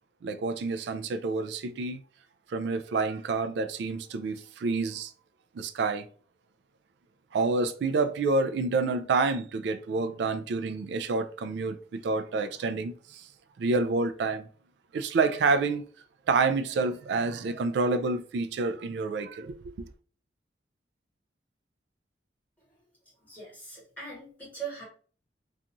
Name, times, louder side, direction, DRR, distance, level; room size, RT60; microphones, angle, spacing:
voice 1, 0.2-2.0 2.5-5.1 5.5-6.1 7.3-13.3 13.6-14.5 14.9-15.8 16.3-19.9, right 3 dB, 70° right, 0.3 m, -28 dB
voice 2, 23.2-24.8, right 5 dB, 10° left, 1.2 m, -41 dB
2.5 x 2.3 x 2.9 m
head